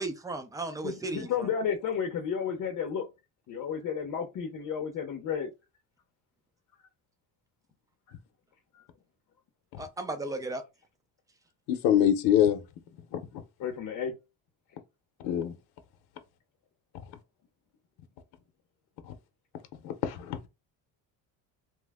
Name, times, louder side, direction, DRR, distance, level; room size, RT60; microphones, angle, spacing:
voice 1, 0.0-1.5 9.8-10.6, right 2 dB, 10° right, 0.4 m, -35 dB
voice 2, 0.8-3.1 3.5-5.5 8.7-8.8 13.6-14.1, left 7 dB, 50° left, 0.7 m, -32 dB
voice 3, 11.7-12.6 13.1-13.2 15.2-15.5 19.8-20.5, left 10 dB, 85° left, 0.8 m, -24 dB
3.1 x 2.1 x 3.4 m
cardioid pair, 150°, 38 cm